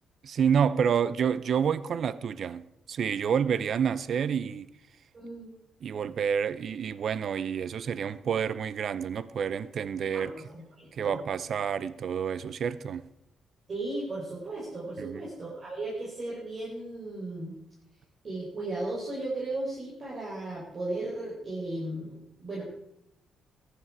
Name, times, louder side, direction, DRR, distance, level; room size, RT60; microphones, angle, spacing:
voice 1, 0.2-4.7 5.8-10.3 10.9-13.1 15.0-15.3, right 7 dB, 55° right, 0.6 m, -29 dB
voice 2, 5.1-5.5 10.1-11.2 13.7-17.5 18.2-22.6, right 2 dB, 40° right, 4.1 m, -36 dB
14.5 x 10.0 x 4.8 m
cardioid pair, 90°, 0 cm